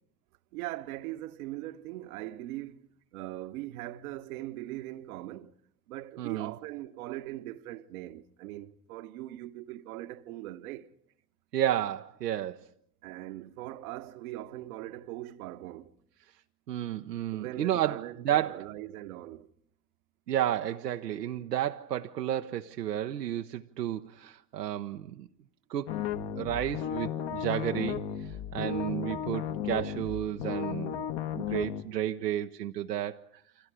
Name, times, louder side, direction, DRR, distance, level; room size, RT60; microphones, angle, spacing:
voice 1, 0.5-2.8 3.1-5.5 5.9-10.9 13.0-15.9 17.3-19.5, right 15 dB, 60° right, 1.2 m, -40 dB
voice 2, 6.2-6.5 11.5-12.6 16.7-18.6 20.3-25.3 25.7-26.1 26.4-31.0 31.4-33.3, right 12 dB, 80° right, 0.9 m, -32 dB
sound 1, 25.9-31.8, left 9 dB, 50° left, 1.9 m, -34 dB
29.5 x 25.5 x 4.9 m
figure-of-eight pair, 75°, 48 cm